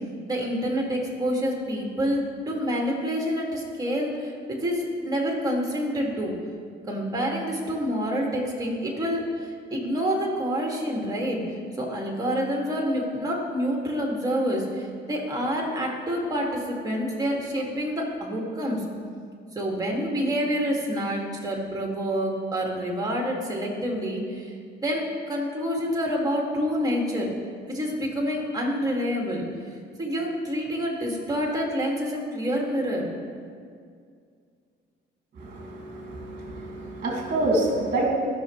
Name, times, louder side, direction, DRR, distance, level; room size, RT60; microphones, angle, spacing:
voice 1, 0.3-6.3 6.8-11.4 11.8-18.8 19.6-27.3 27.7-29.4 30.0-33.1, equal, 20° right, -1 dB, 2.1 m, -27 dB
voice 2, 35.4-38.1, right 2 dB, 45° right, -1 dB, 2.0 m, -27 dB
14.5 x 6.1 x 3.2 m, 2.2 s
cardioid pair, 90°, 20 cm